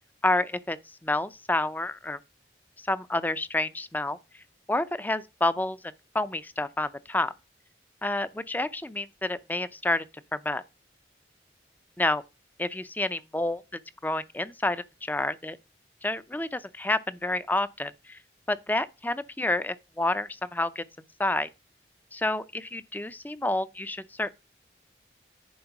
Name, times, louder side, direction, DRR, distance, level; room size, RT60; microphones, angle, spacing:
voice 1, 0.2-0.8 1.0-2.2 2.8-4.2 4.7-5.8 6.1-7.3 8.0-10.0 10.3-10.6 12.0-12.2 12.6-15.6 16.0-18.2 18.5-20.8 21.2-21.5 22.1-24.3, left 2 dB, 10° left, 0.4 m, -29 dB
10.5 x 4.4 x 5.9 m
head